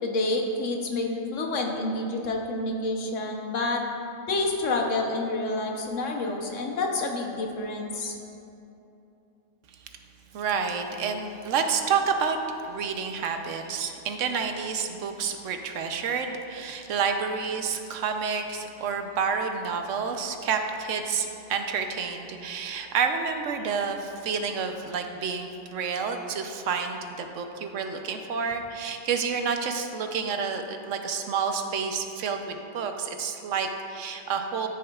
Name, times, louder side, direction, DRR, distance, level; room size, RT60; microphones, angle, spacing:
voice 1, 0.0-3.8 4.3-8.2, left 2 dB, 80° left, 1 dB, 1.3 m, -28 dB
voice 2, 10.3-12.4 12.6-34.7, right 6 dB, 80° right, 5 dB, 1.0 m, -29 dB
14.0 x 6.3 x 2.4 m, 2.8 s
omnidirectional pair, 1.3 m